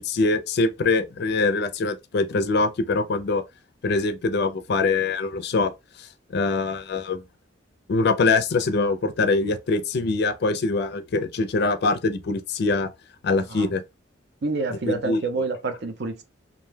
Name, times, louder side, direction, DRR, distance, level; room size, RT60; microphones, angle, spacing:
voice 1, 0.0-3.4 3.8-5.7 6.0-7.2 7.9-12.9 13.2-13.8 14.9-15.2, left 3 dB, 60° left, 0.4 m, -23 dB
voice 2, 14.4-16.2, right 3 dB, 60° right, 0.6 m, -28 dB
2.5 x 2.2 x 3.2 m
head